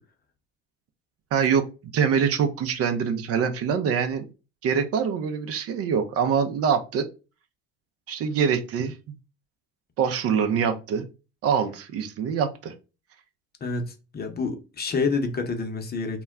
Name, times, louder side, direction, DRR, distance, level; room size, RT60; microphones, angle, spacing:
voice 1, 1.3-1.7 1.9-4.2 4.6-7.0 8.1-8.9 10.0-11.0 11.4-12.7, right 7 dB, 50° right, 0.6 m, -24 dB
voice 2, 13.6-16.2, left 4 dB, 30° left, 0.7 m, -28 dB
2.2 x 2.1 x 3.5 m
hypercardioid pair, 70°, 32 cm